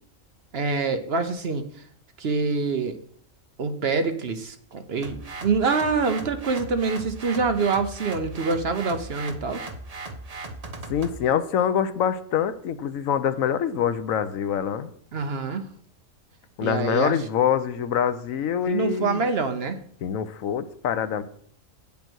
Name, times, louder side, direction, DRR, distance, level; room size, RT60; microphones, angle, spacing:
voice 1, 0.5-1.7 2.2-3.0 3.6-9.7 15.1-15.6 16.6-17.2 18.7-19.8, right 4 dB, 55° right, 8 dB, 1.0 m, -25 dB
sound 1, 5.0-11.2, right 2 dB, 35° right, 0.8 m, -38 dB
voice 2, 10.9-14.9 16.6-19.2 20.0-21.2, left 9 dB, 85° left, 12 dB, 1.1 m, -25 dB
8.9 x 5.4 x 6.1 m, 0.62 s
omnidirectional pair, 1.4 m